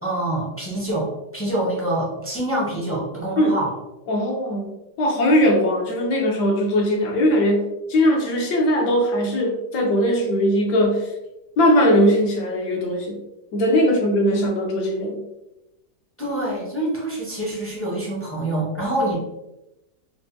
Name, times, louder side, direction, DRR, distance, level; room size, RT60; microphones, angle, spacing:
voice 1, 0.0-3.7 16.2-19.2, right 1 dB, 20° left, -5 dB, 0.3 m, -26 dB
voice 2, 4.1-11.1 11.6-13.2 13.5-15.2, equal, 75° left, 0 dB, 1.4 m, -20 dB
4.6 x 2.2 x 2.6 m, 0.93 s
omnidirectional pair, 1.8 m